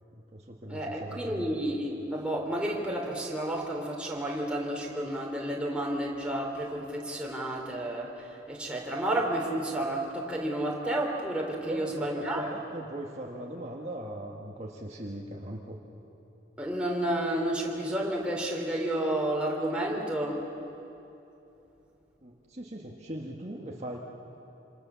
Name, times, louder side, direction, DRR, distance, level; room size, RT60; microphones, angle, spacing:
voice 1, 0.1-1.5 11.6-15.8 22.2-24.0, right 1 dB, 35° right, -1 dB, 1.7 m, -39 dB
voice 2, 0.7-12.4 16.6-20.4, right 1 dB, 5° right, -2 dB, 3.6 m, -31 dB
27.5 x 27.0 x 7.1 m, 2.9 s
head